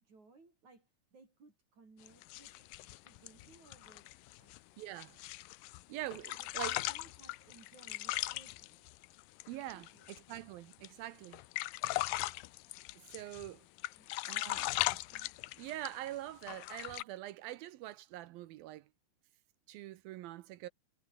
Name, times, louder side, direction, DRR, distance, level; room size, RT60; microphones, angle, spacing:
voice 1, 0.0-2.7 3.1-4.1 4.4-4.6 5.0-5.3 6.4-8.9 9.7-10.1 14.0-14.8, right 3 dB, 45° right, 7.2 m, -62 dB
sound 1, 2.1-5.8 6.1-10.4 10.7-10.9 11.2-13.5 13.8-16.1 16.4-17.0, left 19 dB, 80° left, 2.1 m, -39 dB
voice 2, 4.8-5.2 5.9-6.8 9.5-11.4 13.0-13.7 14.3-15.3 15.6-18.9 19.7-20.7, right 14 dB, 80° right, 2.5 m, -44 dB
omnidirectional pair, 4.6 m